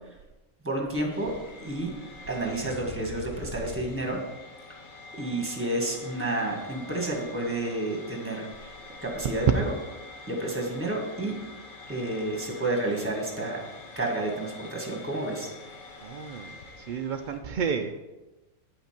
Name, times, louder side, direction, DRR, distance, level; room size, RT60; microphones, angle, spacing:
voice 1, 0.6-1.3 1.6-1.9 2.3-4.2 5.2-8.7 9.0-9.7 10.3-11.4 11.9-13.6 13.9-15.5, right 1 dB, 10° right, 0 dB, 1.6 m, -30 dB
sound 1, 1.1-17.4, left 3 dB, 80° left, 1.5 m, -45 dB
voice 2, 16.0-17.9, right 6 dB, 75° right, 6 dB, 0.4 m, -32 dB
9.4 x 5.8 x 4.4 m, 1.1 s
omnidirectional pair, 1.4 m